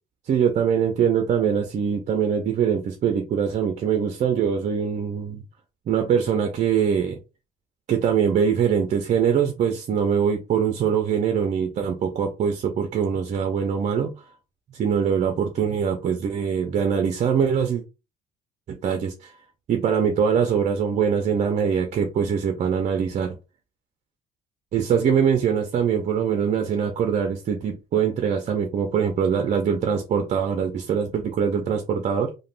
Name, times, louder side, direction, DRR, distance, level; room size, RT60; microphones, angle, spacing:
voice 1, 0.3-5.4 5.9-7.2 7.9-14.1 14.7-17.8 18.7-19.3 19.7-23.4 24.7-32.3, right 7 dB, 45° right, 0.5 m, -23 dB
3.3 x 2.1 x 2.4 m
cardioid pair, 110°, 17 cm